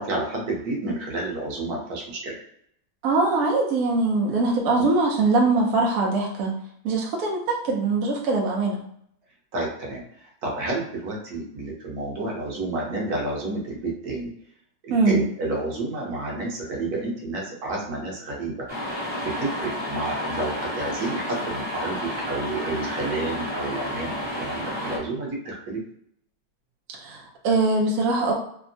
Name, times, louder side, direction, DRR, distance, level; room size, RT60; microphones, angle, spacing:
voice 1, 0.0-2.4 4.8-4.9 9.5-14.3 14.8-18.7 19.2-22.0 22.3-25.8, right 2 dB, 60° right, -2 dB, 1.2 m, -30 dB
voice 2, 3.0-6.5 6.8-8.8 14.9-15.2 27.0-28.3, right 3 dB, 75° right, -2 dB, 0.8 m, -22 dB
sound 1, 18.7-25.0, left 1 dB, 10° right, 0.6 m, -31 dB
3.5 x 2.1 x 2.6 m, 0.68 s
omnidirectional pair, 2.1 m